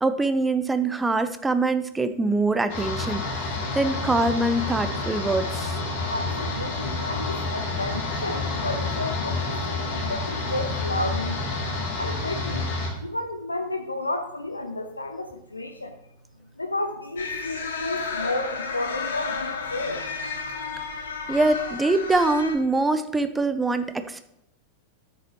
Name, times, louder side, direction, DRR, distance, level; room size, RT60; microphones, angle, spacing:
voice 1, 0.0-5.7 21.3-24.2, right 2 dB, 10° right, 10 dB, 0.6 m, -24 dB
sound 1, 2.7-12.9, left 3 dB, 45° left, 2.9 m, -29 dB
voice 2, 6.1-11.4 12.0-12.7 13.0-16.0 16.6-20.0, left 2 dB, 80° left, 6 dB, 0.6 m, -32 dB
sound 2, 17.2-22.5, left 4 dB, 65° left, 1.2 m, -32 dB
12.5 x 6.9 x 3.0 m, 0.81 s
figure-of-eight pair, 90°, 0 cm